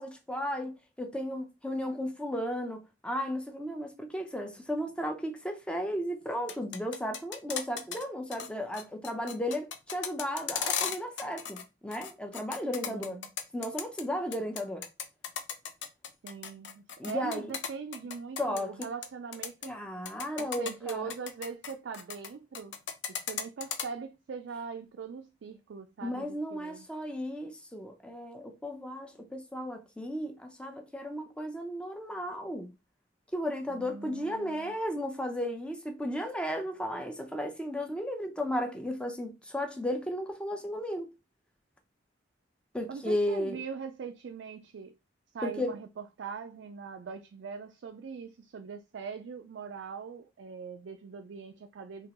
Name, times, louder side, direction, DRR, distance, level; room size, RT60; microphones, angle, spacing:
voice 1, 0.0-13.2 13.5-14.8 17.0-17.5 18.4-18.7 19.7-21.1 26.0-32.7 33.3-41.1 42.7-43.6 45.4-45.8, equal, 5° left, 0.6 m, -34 dB
sound 1, 6.3-8.0 8.3-8.5 8.7-11.6 11.9-14.0 14.3-19.1 19.3-19.7 20.1-22.3 22.5-23.8, left 7 dB, 75° left, 0.6 m, -36 dB
voice 2, 12.8-13.3 16.2-19.8 20.4-22.8 23.1-26.9 33.7-34.7 42.9-44.9 45.3-52.1, right 5 dB, 75° right, 0.4 m, -41 dB
3.6 x 2.9 x 2.9 m
head